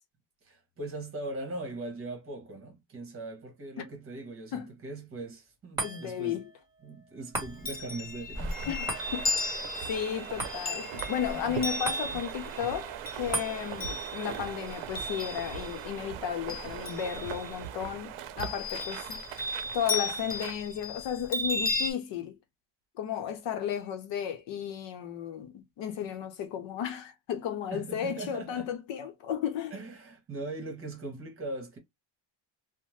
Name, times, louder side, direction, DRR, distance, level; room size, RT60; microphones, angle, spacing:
voice 1, 0.4-6.4 6.8-8.8 27.7-28.7 29.7-31.8, right 2 dB, 30° right, 1.1 m, -40 dB
voice 2, 5.8-6.5 8.7-9.3 9.9-19.2 19.5-22.4 23.0-29.7, left 9 dB, 65° left, 0.8 m, -34 dB
sound 1, 5.8-18.3 18.8-18.9, right 2 dB, 10° right, 1.5 m, -42 dB
Chime, 7.4-15.9 16.2-17.6 18.4-21.9, left 2 dB, 20° left, 0.5 m, -35 dB
sound 2, 8.4-20.6, right 10 dB, 80° right, 0.6 m, -41 dB
2.6 x 2.1 x 3.1 m
cardioid pair, 155°, 47 cm